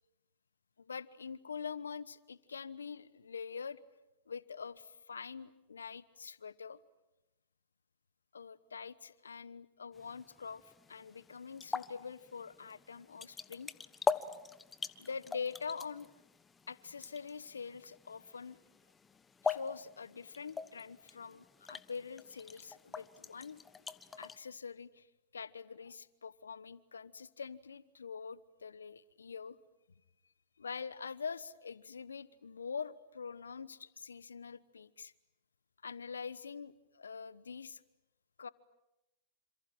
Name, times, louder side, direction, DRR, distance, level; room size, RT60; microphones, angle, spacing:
voice 1, 0.8-3.8 4.3-6.8 8.3-10.6 10.9-13.7 15.0-16.1 16.7-18.6 19.4-23.6 24.2-25.1 25.3-29.6 30.6-35.1 35.8-37.8 38.4-38.5, left 6 dB, 85° left, 18 dB, 1.1 m, -44 dB
sound 1, 9.9-24.4, left 5 dB, 15° left, 1.2 m, -43 dB
28.0 x 27.0 x 7.7 m, 0.93 s
hypercardioid pair, 105°, 0 cm